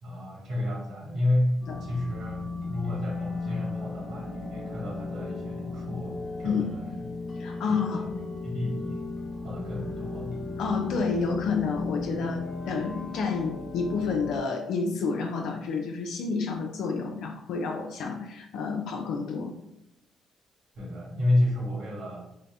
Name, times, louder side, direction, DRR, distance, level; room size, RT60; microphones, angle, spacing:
voice 1, 0.0-7.1 7.4-9.0 9.4-10.4 20.7-22.2, left 1 dB, 75° right, -4 dB, 1.5 m, -31 dB
sound 1, 1.6-14.4, left 3 dB, 50° left, 0.9 m, -35 dB
voice 2, 7.4-8.0 10.6-19.5, left 4 dB, 80° left, 2 dB, 0.4 m, -29 dB
3.8 x 2.1 x 3.4 m, 0.82 s
cardioid pair, 90°, 0 cm